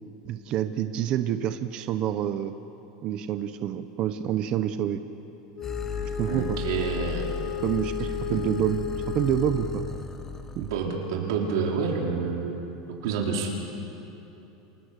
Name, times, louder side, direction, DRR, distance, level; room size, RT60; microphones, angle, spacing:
voice 1, 0.3-2.5 3.0-5.0 6.2-6.6 7.6-9.8 10.6-10.7, right 11 dB, 40° right, 10 dB, 0.9 m, -28 dB
Wind instrument woodwind instrument, 5.5-10.1, left 8 dB, 50° left, 3.7 m, -34 dB
sound 1, 5.6-10.8, left 4 dB, 15° left, 1.3 m, -36 dB
voice 2, 6.3-7.4 8.3-8.4 10.6-12.6 13.0-13.6, right 5 dB, 80° right, 0 dB, 3.7 m, -28 dB
28.5 x 20.5 x 6.8 m, 2.9 s
supercardioid pair, 150°, 2 cm